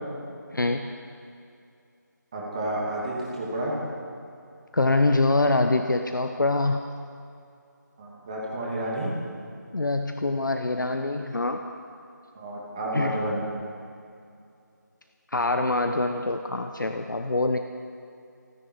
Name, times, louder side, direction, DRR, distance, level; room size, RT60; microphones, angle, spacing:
voice 1, 0.5-0.9 4.7-6.8 9.7-11.6 12.9-13.2 15.3-17.6, left 2 dB, 75° left, 6 dB, 1.0 m, -24 dB
voice 2, 2.3-3.7 8.0-9.1 12.3-13.4, right 1 dB, 20° right, -5 dB, 2.7 m, -30 dB
29.5 x 9.9 x 4.7 m, 2.5 s
figure-of-eight pair, 170°, 11 cm